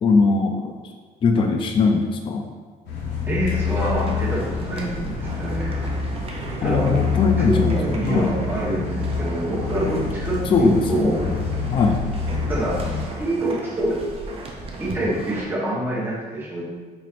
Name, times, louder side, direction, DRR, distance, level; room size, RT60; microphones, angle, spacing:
voice 1, 0.0-0.7 1.2-2.4 6.6-7.8 8.0-8.3 10.5-11.4 11.7-12.0, left 4 dB, 30° left, 4 dB, 0.4 m, -20 dB
sound 1, 2.9-13.0, left 5 dB, 85° left, 0.9 m, -27 dB
voice 2, 3.3-5.9 6.6-6.9 7.4-11.2 12.5-12.8 13.2-14.0 14.8-16.6, right 1 dB, 10° right, -7 dB, 1.2 m, -26 dB
sound 2, 3.5-15.4, right 2 dB, 35° right, 0.6 m, -35 dB
4.3 x 3.0 x 2.5 m, 1.5 s
cardioid pair, 110°, 17 cm